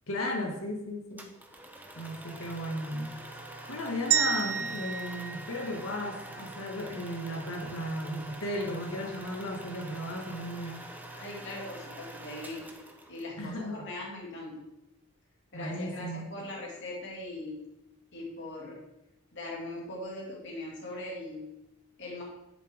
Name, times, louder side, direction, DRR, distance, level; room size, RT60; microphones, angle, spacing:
voice 1, 0.1-1.3 2.0-3.2 3.7-10.8 13.4-13.9 15.5-16.4, left 1 dB, 75° left, 2 dB, 1.9 m, -35 dB
sound 1, 1.2-13.5, right 1 dB, 10° right, 0.9 m, -45 dB
sound 2, 4.1-6.4, right 8 dB, 85° right, 0.7 m, -31 dB
voice 2, 11.2-12.7 13.1-14.7 15.5-17.6 18.1-18.8 19.3-21.5 22.0-22.2, left 2 dB, 55° left, -3 dB, 2.4 m, -40 dB
11.0 x 7.4 x 3.6 m, 0.90 s
head